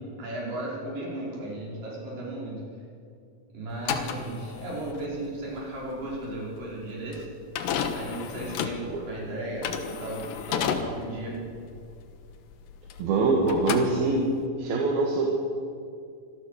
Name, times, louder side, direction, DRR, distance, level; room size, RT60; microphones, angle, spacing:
voice 1, 0.2-2.6 3.5-7.3 7.9-11.5, right 1 dB, 65° right, -4 dB, 6.8 m, -35 dB
sound 1, 3.7-13.2 13.4-14.5, left 7 dB, 75° left, 2.8 m, -33 dB
voice 2, 13.0-14.3 14.6-15.3, right 3 dB, 85° right, 0 dB, 3.8 m, -24 dB
25.5 x 16.5 x 6.7 m, 2.4 s
omnidirectional pair, 4.2 m